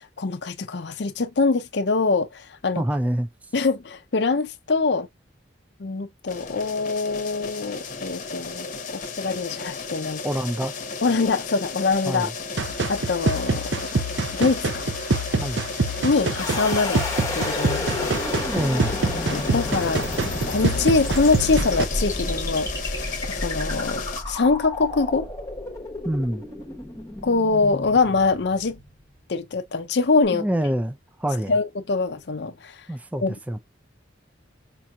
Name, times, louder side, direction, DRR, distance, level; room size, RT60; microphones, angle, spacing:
voice 1, 0.0-2.8 3.5-5.1 5.8-10.2 11.0-12.3 12.9-14.0 14.3-14.9 16.0-17.1 17.3-18.1 19.3-22.7 23.0-25.3 27.2-28.8 29.3-30.5 31.5-32.8 33.2-33.3, left 4 dB, 60° left, 0.6 m, -24 dB
voice 2, 2.8-3.3 10.2-10.7 12.1-12.3 15.4-15.7 18.5-19.0 26.0-26.4 30.3-31.5 32.9-33.6, right 1 dB, 10° right, 0.3 m, -26 dB
sound 1, 6.3-24.2, left 4 dB, 40° left, 0.9 m, -34 dB
sound 2, 12.6-21.8, right 3 dB, 70° right, 0.7 m, -26 dB
sound 3, 16.4-29.3, left 2 dB, 15° left, 1.0 m, -31 dB
5.4 x 2.9 x 2.3 m
head